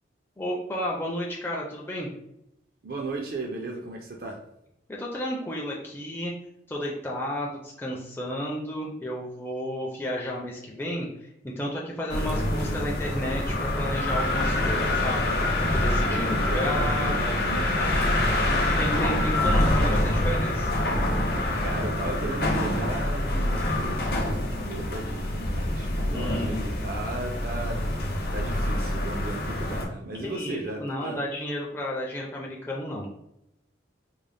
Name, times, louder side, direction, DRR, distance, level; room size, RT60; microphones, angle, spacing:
voice 1, 0.4-2.1 4.9-6.3 6.7-17.1 18.8-20.7 26.1-26.6 30.1-33.1, left 1 dB, 10° left, -3 dB, 0.4 m, -32 dB
voice 2, 2.8-4.4 12.1-12.9 16.1-18.7 21.6-28.1 28.3-31.2, right 2 dB, 50° right, 2 dB, 0.4 m, -36 dB
sound 1, 12.1-29.9, left 1 dB, 50° left, 0.6 m, -26 dB
3.7 x 2.0 x 3.4 m, 0.82 s
head